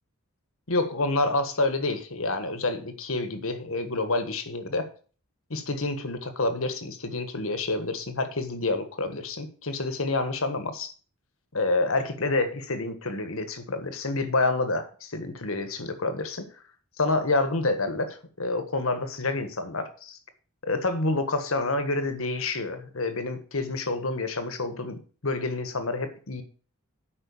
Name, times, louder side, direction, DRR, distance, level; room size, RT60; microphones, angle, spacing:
voice 1, 0.7-4.9 5.5-10.9 11.5-16.5 17.0-20.2 20.6-26.4, left 2 dB, 70° left, 9 dB, 1.5 m, -28 dB
9.1 x 5.5 x 7.1 m, 0.40 s
head